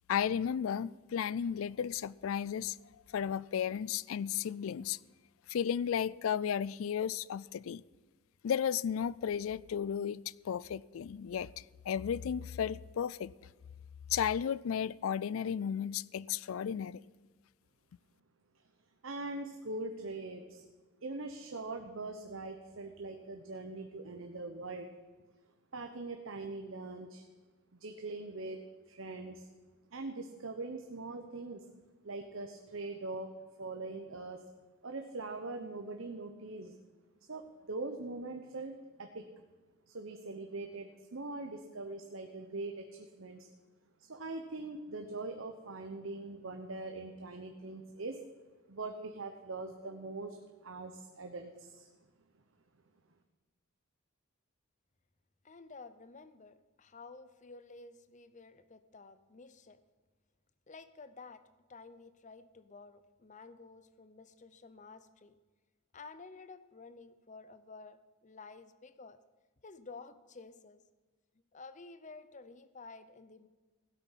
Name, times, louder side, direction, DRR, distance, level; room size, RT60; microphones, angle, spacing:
voice 1, 0.1-2.8 3.1-5.0 5.5-7.8 8.4-11.5 11.9-13.3 14.1-17.0, left 8 dB, 75° left, 0.3 m, -34 dB
voice 2, 19.0-20.6 21.0-24.9 25.7-27.2 27.7-28.6 28.9-29.5 29.9-31.6 32.0-33.3 33.6-34.4 34.8-36.7 37.3-39.2 39.9-43.5 44.0-48.2 48.7-50.4 50.6-51.9, right 2 dB, 65° right, 1.0 m, -42 dB
voice 3, 55.4-59.8 60.7-61.4 61.7-65.3 65.9-69.2 69.6-70.8 71.5-73.5, left 4 dB, 35° left, 0.6 m, -52 dB
16.0 x 8.2 x 5.8 m
head